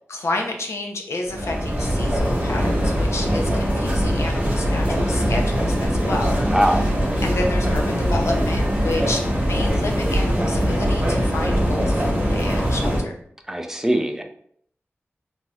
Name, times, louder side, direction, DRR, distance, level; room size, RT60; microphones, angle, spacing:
voice 1, 0.1-6.8 7.2-13.1, left 2 dB, 85° left, 2 dB, 0.5 m, -30 dB
sound 1, 1.3-13.0, equal, 30° right, 0.8 m, -21 dB
voice 2, 6.4-6.8 13.5-14.2, equal, 10° right, 5 dB, 0.4 m, -21 dB
2.6 x 2.3 x 3.1 m, 0.66 s
wide cardioid pair, 80°, 5 cm